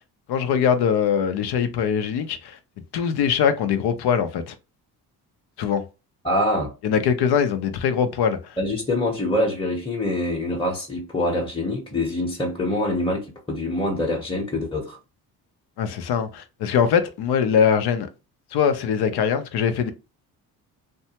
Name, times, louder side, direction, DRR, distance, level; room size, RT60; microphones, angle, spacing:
voice 1, 0.3-2.6 2.9-4.5 5.6-5.8 6.8-8.6 15.8-18.1 18.5-19.9, left 7 dB, 70° left, 0.7 m, -22 dB
voice 2, 6.2-6.7 8.6-15.0, left 1 dB, 15° left, 0.9 m, -25 dB
2.6 x 2.2 x 2.8 m
supercardioid pair, 70°, 41 cm